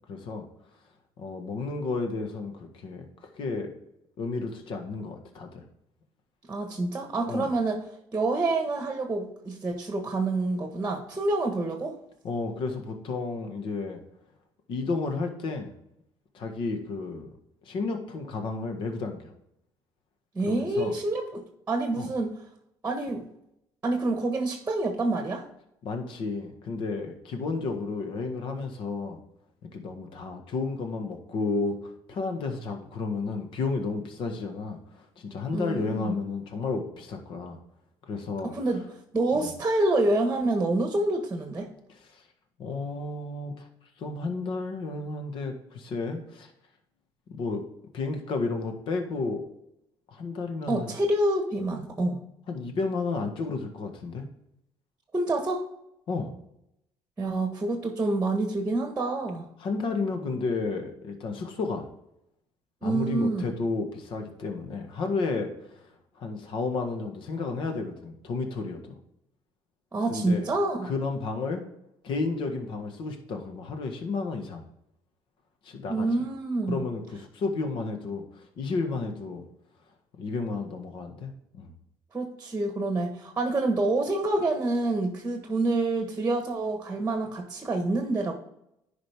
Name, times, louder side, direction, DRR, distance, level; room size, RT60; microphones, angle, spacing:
voice 1, 0.1-0.4 1.2-3.1 3.4-3.7 4.2-5.6 7.3-7.5 12.2-14.0 14.7-15.7 16.3-17.3 17.6-19.3 20.4-20.9 21.9-22.1 25.8-29.2 29.7-37.6 38.1-38.5 39.3-39.5 42.1-42.2 42.6-43.7 44.0-46.5 47.3-47.6 47.9-49.4 50.1-50.9 52.5-54.3 56.1-56.3 59.6-61.9 62.8-65.9 66.1-69.0 70.1-70.5 70.8-71.6 72.0-74.6 75.6-76.1 76.7-79.4 80.2-81.7, left 3 dB, 60° left, 5 dB, 1.6 m, -32 dB
voice 2, 6.5-7.8 8.1-12.0 20.3-22.3 22.8-23.3 23.8-25.4 35.5-36.1 38.4-38.8 39.1-41.7 50.7-52.2 55.1-55.6 57.2-59.4 62.8-63.5 69.9-70.9 75.9-76.8 82.1-88.3, right 2 dB, 15° right, 4 dB, 1.4 m, -27 dB
10.5 x 5.1 x 3.5 m, 0.80 s
cardioid pair, 110°, 10 cm